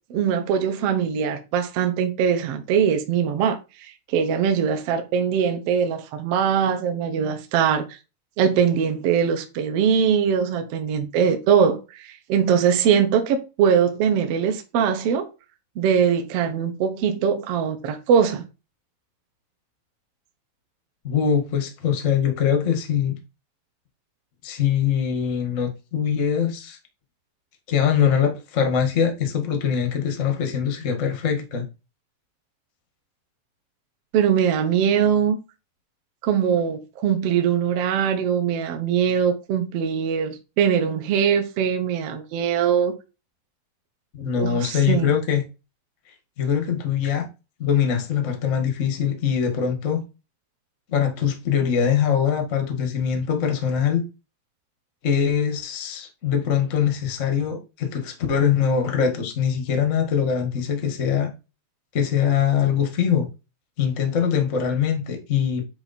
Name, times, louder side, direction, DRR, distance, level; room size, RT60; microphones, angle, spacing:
voice 1, 0.1-7.8 8.4-15.3 15.8-18.4 34.1-35.4 36.2-42.9 44.4-45.1, right 7 dB, 80° right, 1.4 m, -22 dB
voice 2, 21.0-23.2 24.4-26.8 27.7-31.6 44.1-45.4 46.4-47.2 47.6-50.0 50.9-54.0 55.0-61.3 61.9-63.3 63.8-65.6, left 8 dB, 85° left, 0.6 m, -22 dB
9.5 x 3.4 x 4.2 m
omnidirectional pair, 4.4 m